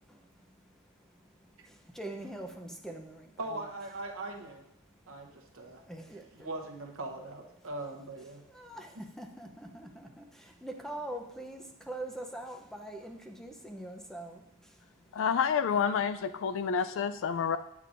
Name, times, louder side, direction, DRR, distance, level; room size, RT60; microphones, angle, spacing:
voice 1, 1.6-3.3 5.9-6.3 8.5-14.8 17.4-17.5, right 1 dB, ahead, 3 dB, 0.6 m, -43 dB
voice 2, 3.4-4.6 5.1-5.8 6.3-8.4, right 2 dB, 65° right, 2 dB, 0.9 m, -40 dB
voice 3, 15.1-17.6, left 6 dB, 65° left, 12 dB, 0.4 m, -29 dB
8.4 x 8.3 x 2.5 m, 0.82 s
head